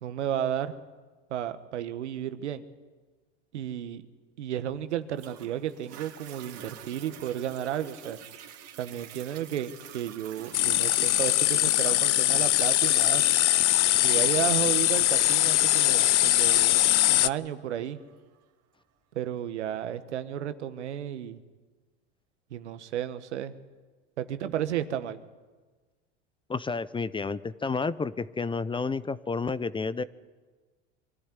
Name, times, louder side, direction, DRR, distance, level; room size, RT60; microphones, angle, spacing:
voice 1, 0.0-0.7 1.3-2.6 3.5-4.0 4.4-8.2 8.8-13.2 14.0-16.7 17.1-18.0 19.1-21.4 22.5-23.5 24.2-25.2, right 10 dB, 90° right, 11 dB, 1.3 m, -33 dB
Toilet flush, 5.2-18.2 18.8-18.9, right 10 dB, 45° right, 2.6 m, -48 dB
sound 1, 10.5-17.3, left 15 dB, 90° left, 0.6 m, -22 dB
voice 2, 26.5-30.0, left 4 dB, 15° left, 17 dB, 0.6 m, -30 dB
24.0 x 14.0 x 9.8 m, 1.3 s
hypercardioid pair, 95°, 34 cm